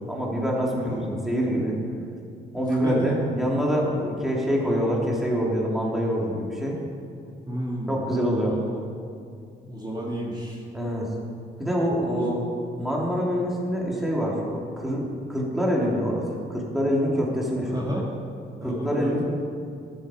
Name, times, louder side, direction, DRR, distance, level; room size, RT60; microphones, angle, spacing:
voice 1, 0.1-1.7 2.5-6.7 7.9-8.5 10.7-11.1 11.6-12.4 12.8-16.2 16.5-17.9 18.6-19.2, equal, ahead, -4 dB, 3.2 m, -25 dB
voice 2, 0.8-1.1 2.6-3.2 7.5-8.0 8.4-8.8 9.6-10.6 12.1-12.3 17.7-18.0 18.6-19.2, equal, 20° right, -5 dB, 2.6 m, -31 dB
13.5 x 11.0 x 5.1 m, 2.5 s
cardioid pair, 90°, 20 cm